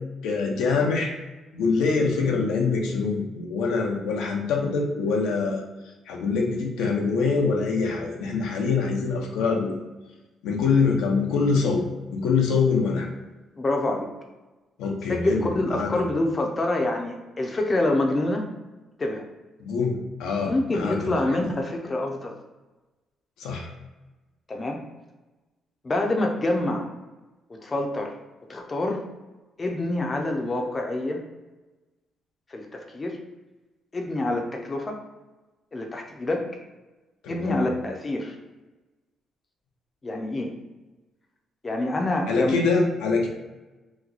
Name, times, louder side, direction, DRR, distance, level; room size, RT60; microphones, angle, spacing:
voice 1, 0.2-1.1 1.5-5.6 6.1-9.7 10.4-11.8 12.1-13.1 14.8-15.5 15.7-16.0 19.6-21.2 23.4-23.7 37.2-37.6 42.3-43.3, left 4 dB, 90° left, 0 dB, 0.6 m, -24 dB
voice 2, 13.6-14.1 15.1-18.4 19.0-19.2 20.4-22.4 24.5-24.8 25.8-26.9 27.5-28.1 28.5-29.0 29.6-31.2 32.5-33.2 33.9-35.0 35.7-36.5 37.3-38.4 40.0-40.5 41.6-42.5, left 2 dB, 30° left, 2 dB, 0.5 m, -26 dB
3.0 x 2.2 x 3.8 m, 1.1 s
cardioid pair, 90°, 0 cm